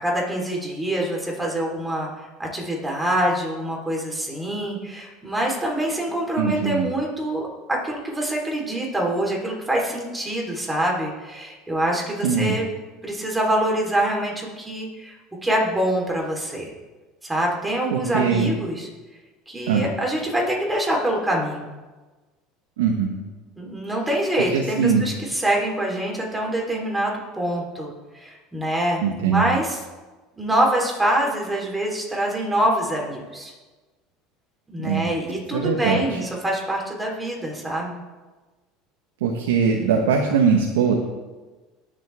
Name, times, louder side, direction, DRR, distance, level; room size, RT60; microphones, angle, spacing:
voice 1, 0.0-12.7 13.0-15.2 15.4-16.7 17.2-18.9 19.5-21.6 23.5-29.8 30.4-33.5 34.7-38.0, right 1 dB, 10° right, -2 dB, 3.7 m, -25 dB
voice 2, 6.4-6.8 12.2-12.6 17.9-18.5 19.7-19.9 22.8-23.2 24.5-25.1 29.0-29.5 34.8-35.0 35.5-36.2 39.2-40.9, right 6 dB, 85° right, 1 dB, 1.3 m, -21 dB
20.0 x 7.4 x 3.6 m, 1.2 s
supercardioid pair, 90°, 0 cm